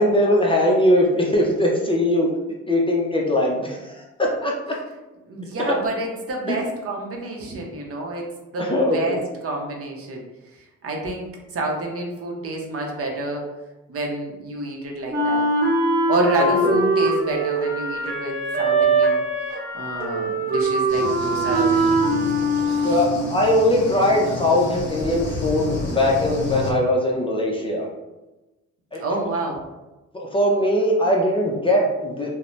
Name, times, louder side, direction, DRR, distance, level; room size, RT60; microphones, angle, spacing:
voice 1, 0.0-2.3 2.7-4.8 5.6-5.7 6.5-6.6 8.6-9.0 16.4-16.8 22.8-27.9 28.9-29.0 30.1-32.4, left 1 dB, 20° left, -2 dB, 0.5 m, -20 dB
voice 2, 5.2-10.3 10.5-13.5 13.9-15.5 16.1-22.3 22.8-23.0 28.9-29.6, right 2 dB, 50° right, 0 dB, 0.7 m, -29 dB
Wind instrument woodwind instrument, 15.1-23.3, right 2 dB, 30° right, 1.1 m, -22 dB
sound 1, 20.9-26.7, left 3 dB, 35° left, 0.9 m, -31 dB
2.6 x 2.1 x 3.1 m, 1.1 s
cardioid pair, 90°, 30 cm